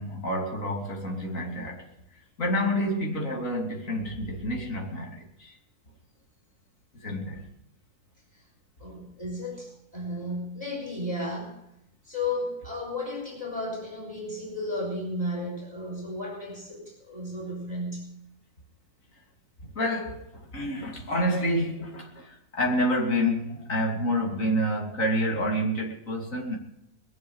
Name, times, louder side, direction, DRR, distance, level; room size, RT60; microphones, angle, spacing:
voice 1, 0.0-1.9 2.4-5.6 7.0-7.4 19.6-20.2 20.5-26.6, equal, 55° left, 3.4 m, -28 dB
voice 2, 8.8-11.6 12.0-18.1, left 1 dB, 25° right, 5.0 m, -34 dB
22.0 x 7.4 x 7.4 m
omnidirectional pair, 1.7 m